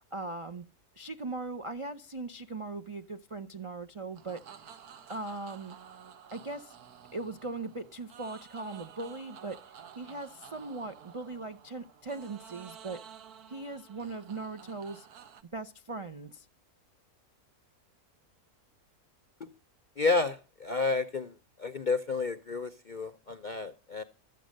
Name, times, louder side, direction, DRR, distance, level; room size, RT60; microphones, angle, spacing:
voice 1, 0.1-0.6 0.9-4.4 5.1-5.8 6.3-6.8 7.1-9.6 10.0-13.0 13.5-15.1 15.5-16.5, right 3 dB, 45° right, 0.4 m, -39 dB
sound 1, 4.1-15.4, right 8 dB, 80° right, 1.5 m, -52 dB
voice 2, 20.0-21.3 21.6-24.0, left 4 dB, 50° left, 0.5 m, -31 dB
13.0 x 8.1 x 6.4 m
omnidirectional pair, 1.6 m